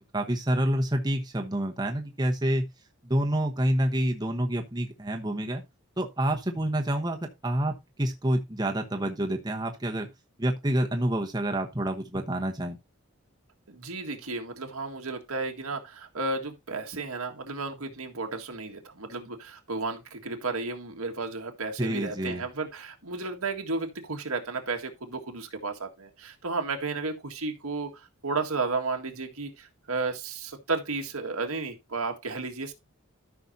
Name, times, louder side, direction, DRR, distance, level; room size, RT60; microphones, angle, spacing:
voice 1, 0.1-2.7 3.0-5.6 6.0-7.2 7.4-10.1 10.4-12.8 21.8-22.4, right 1 dB, 20° right, 1.0 m, -28 dB
voice 2, 13.7-32.7, right 3 dB, 90° right, 1.8 m, -33 dB
13.5 x 5.9 x 2.7 m
head